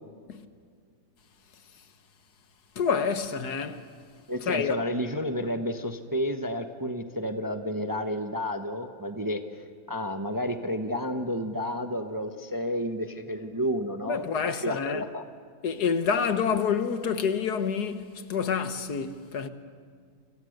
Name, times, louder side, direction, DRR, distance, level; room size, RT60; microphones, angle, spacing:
voice 1, 2.8-3.9 4.4-4.8 14.1-15.0 15.6-19.5, left 6 dB, 70° left, 1.7 m, -28 dB
voice 2, 4.3-9.4 9.9-14.2 14.5-15.2, equal, 15° right, 0.9 m, -31 dB
29.5 x 25.5 x 6.6 m
omnidirectional pair, 1.8 m